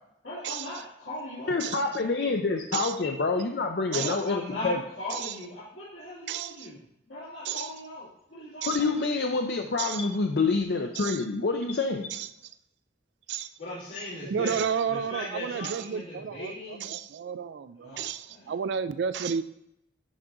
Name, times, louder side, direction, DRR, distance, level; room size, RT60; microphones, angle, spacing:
voice 1, 0.2-2.4 3.9-6.8 7.1-9.0 13.6-14.6 14.9-16.9 17.8-18.5, left 1 dB, 85° left, -10 dB, 2.2 m, -39 dB
voice 2, 1.5-4.8 8.7-12.1, left 3 dB, 60° left, 3 dB, 0.5 m, -27 dB
voice 3, 6.3-6.7 7.4-7.7 8.6-8.8 9.8-10.0 11.0-11.2 12.1-12.3 13.3-13.5 14.2-19.4, right 7 dB, 65° right, 12 dB, 0.3 m, -32 dB
10.5 x 3.8 x 3.7 m, 0.82 s
head